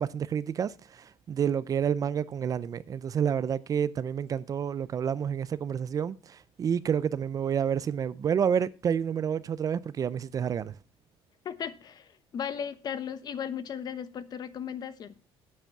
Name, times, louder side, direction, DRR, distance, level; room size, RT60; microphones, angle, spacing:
voice 1, 0.0-10.7, right 8 dB, 35° right, 0.5 m, -29 dB
voice 2, 11.4-15.3, left 8 dB, 45° left, 1.1 m, -36 dB
9.1 x 8.9 x 5.9 m
cardioid pair, 115°, 10 cm